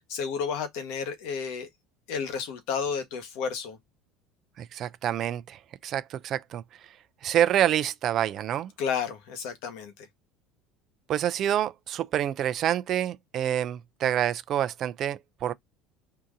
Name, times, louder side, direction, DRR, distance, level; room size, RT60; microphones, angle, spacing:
voice 1, 0.1-1.7 2.1-3.8 8.8-9.9, left 6 dB, 75° left, 1.2 m, -31 dB
voice 2, 4.6-6.6 7.2-8.7 11.1-15.5, right 11 dB, 45° right, 0.4 m, -27 dB
2.8 x 2.6 x 3.6 m
supercardioid pair, 120°, 0 cm